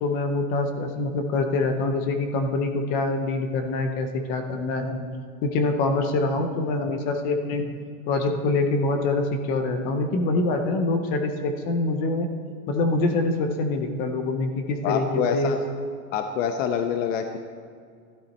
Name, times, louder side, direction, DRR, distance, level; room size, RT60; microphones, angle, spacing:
voice 1, 0.0-5.0 5.4-7.6 8.1-12.3 12.7-15.5, left 2 dB, 20° left, 6 dB, 0.5 m, -25 dB
voice 2, 14.8-15.6 16.1-17.4, left 7 dB, 60° left, 6 dB, 0.9 m, -26 dB
13.5 x 12.0 x 4.2 m, 2.2 s
supercardioid pair, 170°, 43 cm